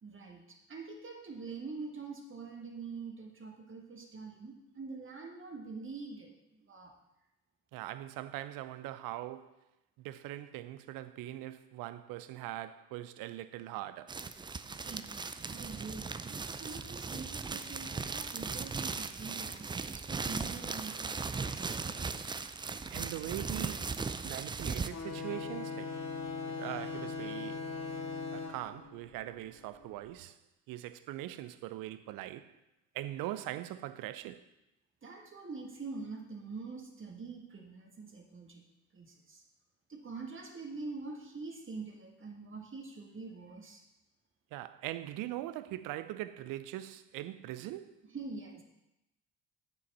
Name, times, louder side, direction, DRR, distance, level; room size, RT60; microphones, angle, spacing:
voice 1, 0.0-6.9 14.7-22.0 35.0-38.6 38.9-39.4 39.9-43.8 48.0-48.6, right 4 dB, 30° right, 1.7 m, -45 dB
voice 2, 7.7-9.5 10.0-14.2 22.9-23.9 24.2-26.0 26.6-27.7 28.3-30.4 30.7-32.5 32.9-34.5 44.5-48.0, right 14 dB, 60° right, 0.6 m, -41 dB
sound 1, 14.1-24.9, right 4 dB, 15° right, 0.4 m, -38 dB
sound 2, 24.9-30.1, left 4 dB, 40° left, 1.4 m, -40 dB
8.9 x 6.7 x 4.2 m
hypercardioid pair, 50°, 38 cm